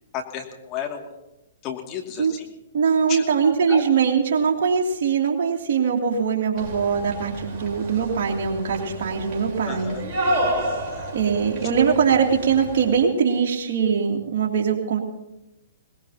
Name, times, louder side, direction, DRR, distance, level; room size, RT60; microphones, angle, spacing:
voice 1, 0.1-1.1 1.6-2.5 3.1-3.2 3.7-3.8 9.6-10.0 10.9-11.1, left 8 dB, 30° left, 2 dB, 2.4 m, -32 dB
voice 2, 2.7-10.0 11.1-15.0, right 6 dB, 55° right, -1 dB, 2.9 m, -22 dB
sound 1, 6.6-13.1, right 1 dB, 35° right, 4.1 m, -30 dB
21.0 x 20.0 x 2.9 m, 0.94 s
figure-of-eight pair, 120°, 0 cm